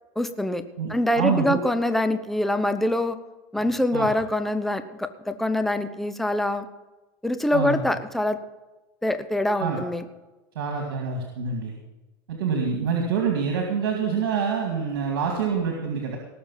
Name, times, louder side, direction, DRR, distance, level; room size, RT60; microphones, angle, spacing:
voice 1, 0.2-0.6 0.9-3.2 3.5-6.7 7.2-8.4 9.0-10.0, left 1 dB, ahead, 10 dB, 0.8 m, -24 dB
voice 2, 0.8-1.6 3.9-4.1 7.5-7.8 9.6-9.8 10.6-11.7 12.3-16.2, right 6 dB, 85° right, 1 dB, 2.3 m, -26 dB
18.0 x 6.9 x 5.7 m, 1.1 s
supercardioid pair, 115°, 12 cm